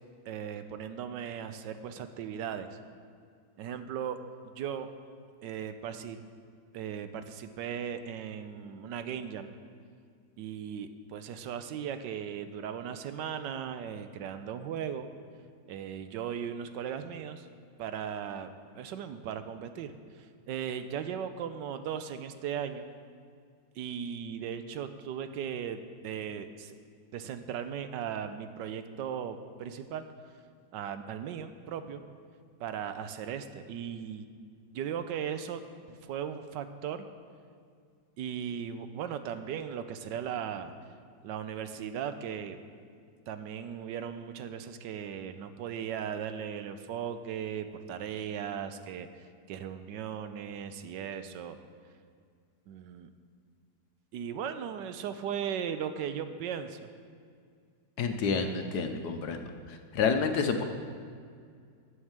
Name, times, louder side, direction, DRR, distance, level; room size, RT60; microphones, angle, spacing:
voice 1, 0.3-2.8 3.6-4.2 4.6-4.9 5.4-6.2 6.7-9.5 10.4-15.1 15.7-17.5 17.8-22.8 23.8-26.7 27.1-30.0 30.7-32.0 32.6-34.3 34.7-35.6 35.9-37.1 38.2-40.7 41.2-42.6 43.3-49.1 49.5-51.6 52.7-53.1 54.1-56.9, right 8 dB, 75° right, 10 dB, 1.2 m, -37 dB
voice 2, 58.0-59.4 59.9-60.6, left 5 dB, 65° left, 6 dB, 1.2 m, -28 dB
11.0 x 6.4 x 7.3 m, 2.2 s
omnidirectional pair, 2.0 m